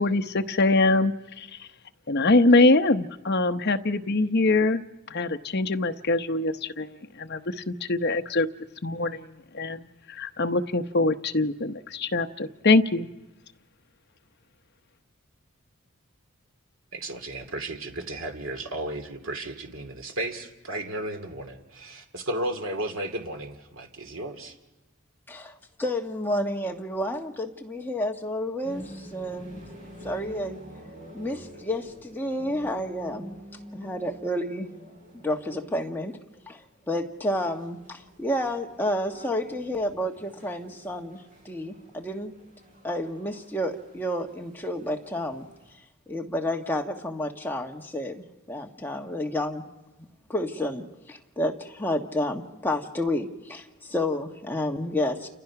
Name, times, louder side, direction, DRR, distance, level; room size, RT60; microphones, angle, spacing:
voice 1, 0.0-1.5 2.1-4.8 5.1-8.5 8.8-9.3 9.5-13.1, left 2 dB, 50° left, 7 dB, 0.9 m, -23 dB
voice 2, 16.9-24.6, right 1 dB, 65° right, 6 dB, 2.4 m, -34 dB
voice 3, 25.3-29.6 30.0-30.6 31.1-33.4 33.7-34.7 35.1-36.2 36.5-42.3 42.8-45.5 46.1-49.7 50.3-55.3, left 1 dB, 10° left, 1 dB, 1.5 m, -30 dB
sound 1, 28.6-45.7, equal, 35° right, 7.5 m, -48 dB
29.5 x 29.0 x 5.9 m, 1.0 s
head